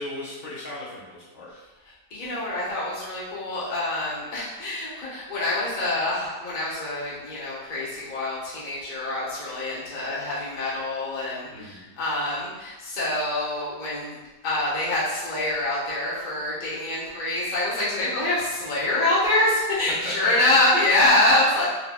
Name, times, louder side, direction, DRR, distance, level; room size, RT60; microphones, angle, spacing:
voice 1, 0.0-1.5 11.5-11.9 20.0-20.6, left 1 dB, 60° left, -9 dB, 1.3 m, -35 dB
voice 2, 2.1-14.2 14.4-21.6, left 1 dB, 35° left, -9 dB, 1.0 m, -25 dB
4.2 x 2.9 x 2.3 m, 1.2 s
omnidirectional pair, 1.7 m